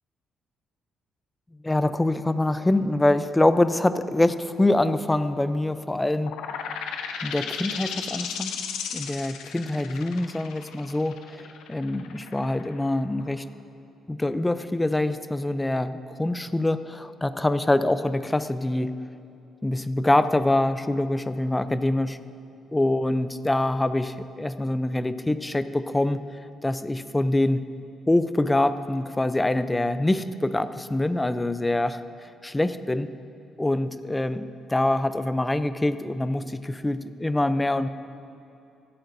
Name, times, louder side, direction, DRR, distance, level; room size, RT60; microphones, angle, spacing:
voice 1, 1.6-6.3 7.2-8.5 8.9-13.4 14.1-18.9 19.6-22.2 22.7-26.2 26.6-27.6 28.1-32.0 32.4-33.1 33.6-37.9, left 1 dB, 15° left, 12 dB, 0.5 m, -25 dB
sound 1, 6.2-13.6, left 7 dB, 90° left, 0.7 m, -35 dB
25.5 x 8.7 x 2.7 m, 2.7 s
cardioid pair, 90°, 0 cm